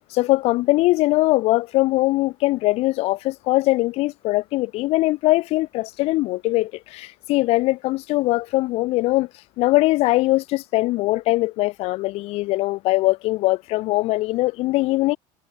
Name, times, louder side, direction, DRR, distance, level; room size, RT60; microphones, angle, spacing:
voice 1, 0.1-9.3 9.6-15.2, left 19 dB, 55° left, 1.7 m, -21 dB
cardioid pair, 160°, 13 cm